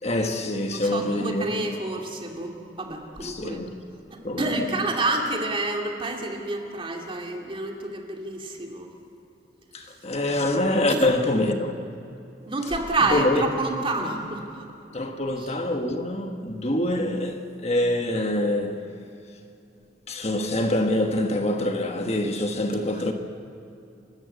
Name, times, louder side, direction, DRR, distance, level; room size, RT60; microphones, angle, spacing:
voice 1, 0.0-1.6 3.2-3.8 4.2-4.8 9.7-11.8 13.1-13.5 14.9-18.9 20.1-23.1, left 1 dB, 35° left, 1.4 m, -25 dB
voice 2, 0.9-2.5 2.8-3.6 4.1-8.9 10.9-11.1 12.5-14.6 15.4-15.5, right 2 dB, 30° right, 2.6 m, -28 dB
30.0 x 13.5 x 8.1 m
head